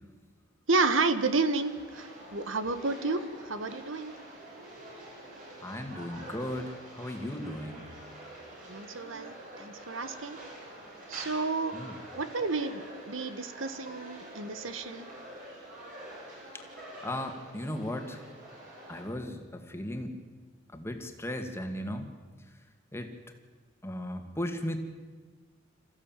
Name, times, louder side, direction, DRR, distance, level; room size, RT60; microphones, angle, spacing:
voice 1, 0.7-4.1 8.7-10.4 11.1-11.8 12.1-15.1, right 3 dB, 75° right, 11 dB, 1.4 m, -31 dB
sound 1, 1.2-19.0, right 1 dB, 45° right, 7.7 m, -47 dB
voice 2, 5.6-7.9 11.7-12.0 16.5-16.7 17.0-18.2 18.9-20.2 20.7-22.1 22.9-23.1 23.8-24.8, left 1 dB, 15° left, 5 dB, 2.2 m, -36 dB
27.0 x 15.0 x 9.0 m, 1.4 s
head